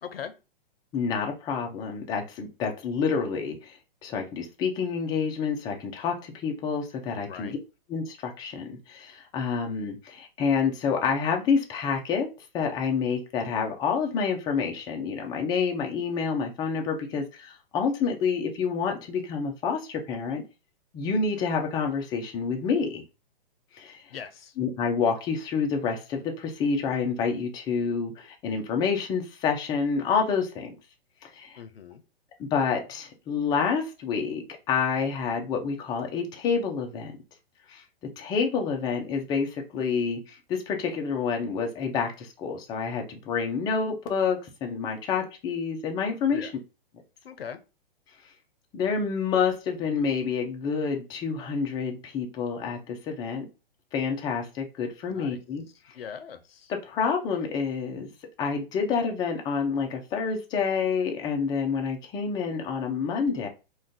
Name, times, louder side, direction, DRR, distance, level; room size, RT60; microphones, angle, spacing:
voice 1, 0.0-0.3 7.3-7.6 24.1-24.5 31.6-32.0 46.3-46.5 47.2-47.6 55.1-55.4 55.9-56.7, left 7 dB, 90° left, 11 dB, 0.6 m, -40 dB
voice 2, 0.9-7.6 7.9-12.3 12.5-20.4 20.9-23.0 23.7-24.0 24.6-30.8 31.2-31.6 32.4-37.1 37.7-37.8 38.2-46.5 48.7-53.5 53.9-55.6 56.7-58.1 58.4-63.5, left 5 dB, 15° left, 3 dB, 0.4 m, -28 dB
2.4 x 2.2 x 3.6 m, 0.29 s
hypercardioid pair, 125°, 29 cm